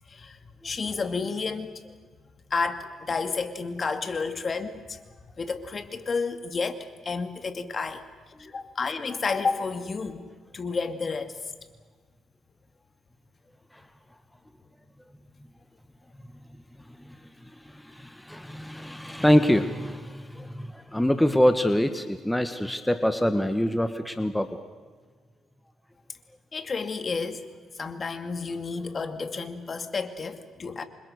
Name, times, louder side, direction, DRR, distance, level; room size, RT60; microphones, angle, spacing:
voice 1, 0.1-0.4 0.6-1.7 2.5-5.0 5.4-8.0 8.4-10.2 10.5-11.5 26.5-27.5 27.8-30.8, left 4 dB, 40° left, 8 dB, 2.4 m, -31 dB
voice 2, 17.5-24.6, left 1 dB, 5° left, 8 dB, 1.5 m, -25 dB
29.0 x 25.5 x 6.6 m, 1.5 s
cardioid pair, 90°, 0 cm